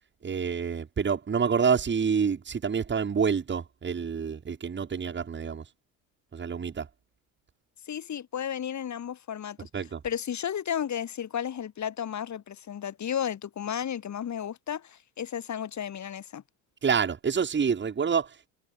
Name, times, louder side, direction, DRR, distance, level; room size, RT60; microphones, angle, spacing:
voice 1, 0.2-5.6 6.3-6.9 9.7-10.0 16.8-18.5, right 6 dB, 25° right, 2.7 m, -27 dB
voice 2, 7.9-9.7 10.0-16.4, left 9 dB, 40° left, 7.7 m, -33 dB
hypercardioid pair, 85°, 43 cm